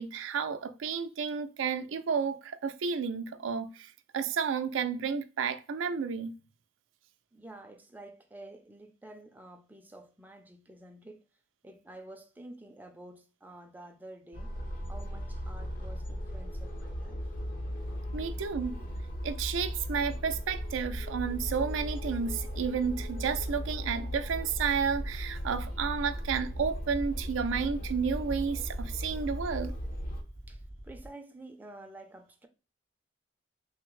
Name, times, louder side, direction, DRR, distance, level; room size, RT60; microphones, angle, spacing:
voice 1, 0.0-6.4 18.1-18.8 19.2-29.7, right 6 dB, 85° right, 0.4 m, -32 dB
voice 2, 7.3-11.2 11.6-14.5 14.9-17.2 18.3-18.4 30.5-32.5, right 1 dB, 10° right, 0.4 m, -50 dB
sound 1, 14.3-30.2, equal, 50° left, 0.7 m, -37 dB
Aircraft, 20.4-31.1, right 1 dB, 65° left, 1.7 m, -47 dB
3.4 x 2.0 x 3.0 m
head